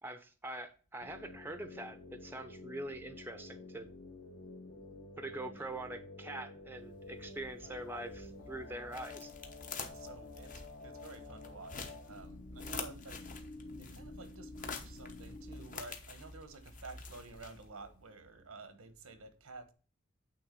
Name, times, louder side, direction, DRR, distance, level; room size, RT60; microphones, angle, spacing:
voice 1, 0.0-3.9 5.2-9.3, right 1 dB, 10° right, 0.6 m, -44 dB
sound 1, 1.0-15.8, left 2 dB, 65° left, 1.5 m, -50 dB
sound 2, 6.9-17.9, left 4 dB, 40° left, 0.9 m, -48 dB
voice 2, 9.8-13.3 13.8-19.7, right 3 dB, 90° right, 1.1 m, -51 dB
8.7 x 3.5 x 5.1 m
head